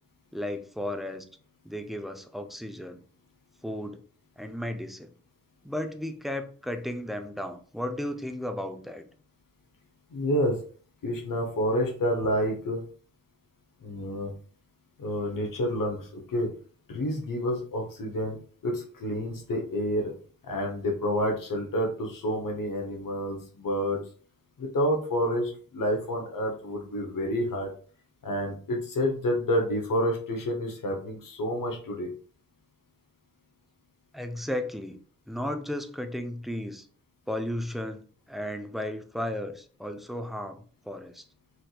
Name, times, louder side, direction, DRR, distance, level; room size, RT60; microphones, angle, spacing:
voice 1, 0.3-1.2 1.6-3.0 3.6-4.0 4.4-5.1 5.6-9.0 34.1-35.0 35.3-36.9 37.3-41.2, left 1 dB, ahead, 7 dB, 0.5 m, -34 dB
voice 2, 10.1-10.6 11.0-12.8 13.8-14.3 15.0-16.5 16.9-18.4 18.6-20.1 20.4-24.0 24.6-27.7 28.2-32.1, equal, 80° left, 1 dB, 0.9 m, -29 dB
4.3 x 2.6 x 2.3 m, 0.43 s
cardioid pair, 45°, 32 cm